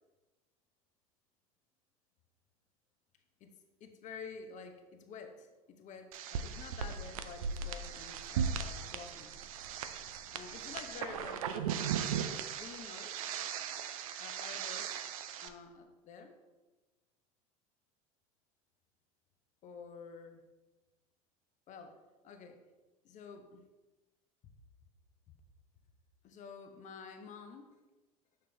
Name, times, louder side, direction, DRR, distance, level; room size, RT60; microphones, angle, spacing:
voice 1, 3.4-9.3 10.3-11.9 12.5-13.1 14.2-15.1 15.4-16.4 19.6-20.4 21.7-22.0 22.2-22.6 23.0-23.7 26.2-27.7, left 5 dB, 40° left, 6 dB, 1.0 m, -49 dB
sound 1, 6.1-15.5, right 7 dB, 70° right, 0.5 m, -38 dB
6.7 x 6.0 x 3.4 m, 1.2 s
hypercardioid pair, 75°, 19 cm